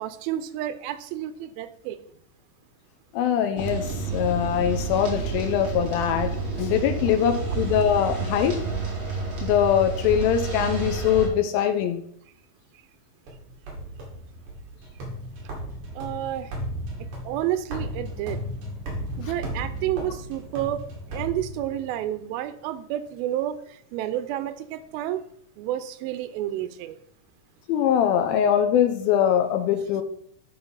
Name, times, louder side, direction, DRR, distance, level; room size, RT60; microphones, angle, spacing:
voice 1, 0.0-2.0 15.9-16.5 17.3-18.4 19.2-20.8 21.1-23.6 23.9-25.2 25.6-27.0, right 12 dB, 85° right, 11 dB, 2.4 m, -30 dB
voice 2, 3.1-6.3 6.6-8.6 9.4-12.0 27.7-30.0, left 9 dB, 85° left, 7 dB, 2.5 m, -22 dB
sound 1, 3.6-11.3, right 4 dB, 35° right, 3.0 m, -30 dB
sound 2, 13.3-22.1, equal, 60° right, 3.5 m, -35 dB
11.0 x 4.0 x 5.6 m, 0.64 s
omnidirectional pair, 4.3 m